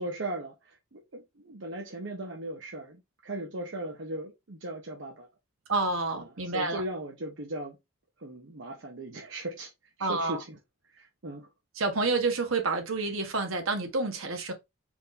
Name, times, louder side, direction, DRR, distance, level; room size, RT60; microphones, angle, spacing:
voice 1, 0.0-5.3 6.2-7.8 8.2-9.7 10.0-10.6 10.9-11.5, right 1 dB, 60° right, 0.8 m, -38 dB
voice 2, 5.7-6.8 10.0-10.4 11.8-14.5, right 3 dB, 75° right, 1.2 m, -29 dB
4.6 x 2.6 x 3.9 m
head